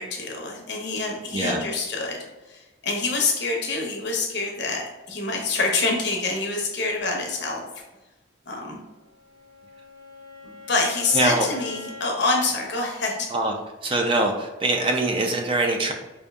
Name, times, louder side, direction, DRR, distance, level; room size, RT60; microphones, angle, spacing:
voice 1, 0.0-7.6 8.5-8.8 10.4-13.3, left 3 dB, 55° left, 0 dB, 0.8 m, -26 dB
Bowed string instrument, 9.0-12.2, left 3 dB, 85° right, 1.0 m, -42 dB
voice 2, 11.1-11.5 13.3-13.5 13.8-15.9, right 2 dB, 25° right, 2 dB, 0.4 m, -23 dB
5.0 x 2.6 x 2.3 m, 1.1 s
head